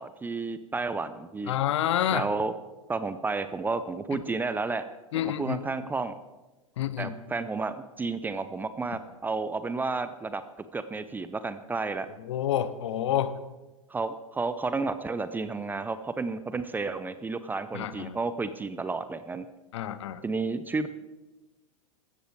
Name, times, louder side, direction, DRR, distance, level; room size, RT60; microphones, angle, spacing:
voice 1, 0.0-1.6 2.1-2.5 2.9-4.9 5.1-6.2 7.0-12.1 13.9-19.5 20.2-20.9, right 3 dB, 10° right, 12 dB, 0.6 m, -31 dB
voice 2, 1.5-2.3 4.1-4.2 5.1-5.6 6.8-7.1 12.2-13.3 17.7-18.2 19.7-20.2, left 11 dB, 55° left, 14 dB, 1.0 m, -28 dB
15.5 x 13.5 x 4.7 m, 1.1 s
figure-of-eight pair, 95°, 18 cm